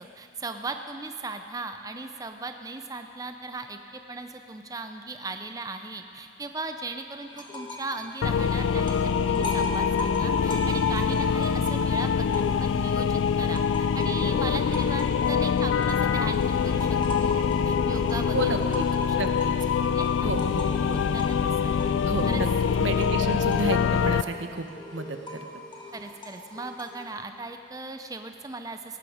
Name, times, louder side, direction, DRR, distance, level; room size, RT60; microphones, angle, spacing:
voice 1, 0.0-9.0 9.3-19.2 19.5-20.3 20.9-21.7 22.3-22.4 25.9-29.0, right 3 dB, 20° right, 6 dB, 0.5 m, -38 dB
sound 1, 7.3-8.0 8.2-12.9 13.3-27.1, left 2 dB, 25° left, 1.7 m, -38 dB
sound 2, 8.2-24.2, left 7 dB, 85° left, 0.3 m, -24 dB
voice 2, 18.3-18.9 19.2-19.5 20.2-21.0 22.0-22.5 22.8-24.7 24.9-25.4, right 3 dB, 90° right, 6 dB, 1.0 m, -31 dB
18.0 x 14.0 x 4.9 m, 2.6 s
head